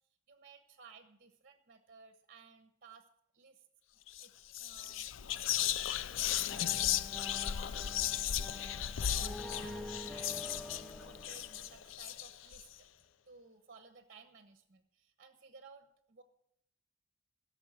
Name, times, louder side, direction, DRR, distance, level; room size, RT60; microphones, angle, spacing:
voice 1, 0.3-3.1 3.3-3.6 4.2-5.1 5.4-12.9 13.3-16.2, right 4 dB, 45° right, 7 dB, 1.2 m, -58 dB
Whispering, 4.1-4.3 4.5-12.6, left 11 dB, 85° left, 0.5 m, -36 dB
sound 1, 6.5-12.2, left 1 dB, 5° left, 0.5 m, -47 dB
17.0 x 6.7 x 8.9 m, 0.75 s
head